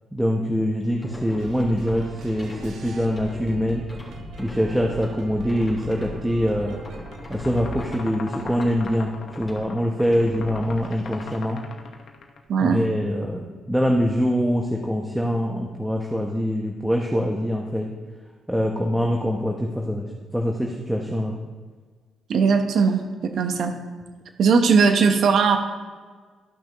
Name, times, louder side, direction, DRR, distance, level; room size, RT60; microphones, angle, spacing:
voice 1, 0.1-3.8 4.4-6.8 7.3-11.6 12.6-17.9 18.5-21.4, equal, 5° right, 0 dB, 0.9 m, -24 dB
sound 1, 1.0-2.7 3.1-8.0 8.4-9.0 9.3-9.6 10.0-11.3, left 1 dB, 20° left, 2.8 m, -40 dB
sound 2, 1.4-7.8, right 3 dB, 85° right, 1.3 m, -41 dB
sound 3, 6.7-12.4, left 4 dB, 60° left, 1.1 m, -40 dB
voice 2, 12.5-12.8 22.3-23.7 24.4-25.6, right 5 dB, 65° right, 5 dB, 1.0 m, -19 dB
13.5 x 5.9 x 3.1 m, 1.5 s
cardioid pair, 90°, 0 cm